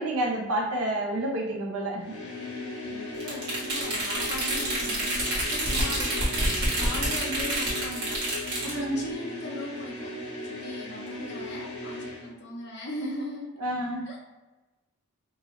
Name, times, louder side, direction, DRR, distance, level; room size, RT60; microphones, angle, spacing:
voice 1, 0.0-2.1 8.6-9.0 13.6-14.1, right 1 dB, 80° right, 0 dB, 0.8 m, -29 dB
sound 1, 2.0-12.3, left 2 dB, 90° left, 1.0 m, -37 dB
voice 2, 2.3-8.3 8.6-13.5 14.1-14.2, left 1 dB, 50° left, -2 dB, 0.8 m, -39 dB
sound 2, 3.2-8.7, right 1 dB, 50° right, 1.4 m, -28 dB
3.6 x 2.6 x 3.1 m, 1.1 s
head